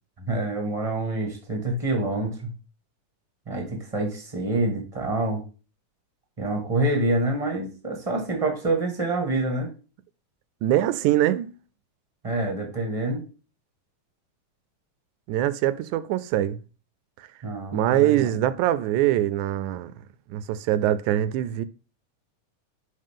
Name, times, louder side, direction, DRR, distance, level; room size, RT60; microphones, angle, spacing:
voice 1, 0.2-2.5 3.5-5.4 6.4-9.7 12.2-13.2 17.4-18.3, right 2 dB, 20° right, 1.0 m, -27 dB
voice 2, 10.6-11.6 15.3-16.6 17.2-17.3 17.7-19.9 20.3-21.6, right 13 dB, 80° right, 1.9 m, -23 dB
10.5 x 3.6 x 3.6 m
omnidirectional pair, 3.5 m